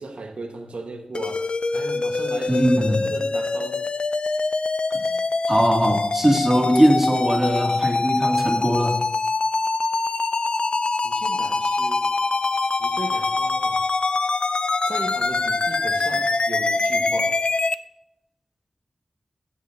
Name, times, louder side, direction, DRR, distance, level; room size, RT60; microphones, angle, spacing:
voice 1, 0.0-3.9 11.0-12.1 12.8-13.9 14.8-17.4, right 3 dB, 85° right, 4 dB, 1.3 m, -36 dB
sound 1, 1.1-17.7, left 3 dB, 50° left, 0.3 m, -24 dB
voice 2, 2.5-3.0 4.9-5.1 5.5-9.0, equal, 15° right, 0 dB, 2.3 m, -20 dB
16.0 x 9.0 x 2.7 m, 0.86 s
wide cardioid pair, 85°, 2 cm